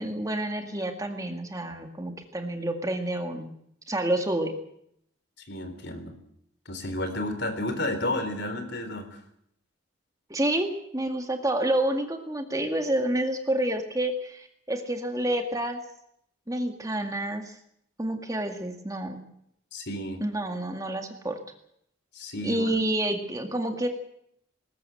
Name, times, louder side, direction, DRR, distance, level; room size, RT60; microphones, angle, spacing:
voice 1, 0.0-3.5 3.9-4.5 10.3-15.8 16.5-17.5 18.0-19.2 20.2-21.4 22.4-23.9, right 1 dB, 15° right, 5 dB, 2.0 m, -29 dB
voice 2, 5.5-6.1 6.7-9.2 19.7-20.2 22.1-22.7, left 1 dB, 55° left, 8 dB, 3.9 m, -32 dB
20.5 x 19.5 x 7.8 m, 0.72 s
head